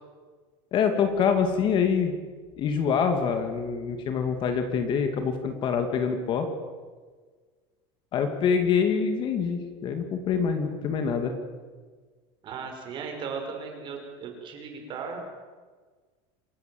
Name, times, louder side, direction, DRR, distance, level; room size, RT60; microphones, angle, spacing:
voice 1, 0.7-2.1 2.6-6.5 8.1-11.3, left 6 dB, 35° left, 7 dB, 2.4 m, -25 dB
voice 2, 12.4-15.2, right 5 dB, 35° right, 3 dB, 5.6 m, -36 dB
27.5 x 15.5 x 7.8 m, 1.5 s
cardioid pair, 160°, 14 cm